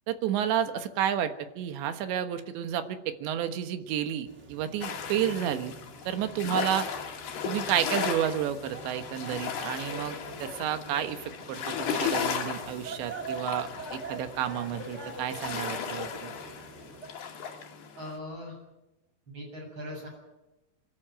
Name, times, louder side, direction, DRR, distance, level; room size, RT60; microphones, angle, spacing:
voice 1, 0.1-5.7 6.1-6.9 7.5-16.3, right 10 dB, 90° right, 8 dB, 3.6 m, -31 dB
sound 1, 4.3-17.1, right 3 dB, 75° right, 0.6 m, -44 dB
sound 2, 4.8-18.2, left 7 dB, 70° left, 4.1 m, -36 dB
voice 2, 18.0-18.6 19.3-20.1, left 1 dB, 25° right, 1 dB, 7.7 m, -40 dB
26.5 x 12.5 x 9.0 m, 0.97 s
omnidirectional pair, 5.0 m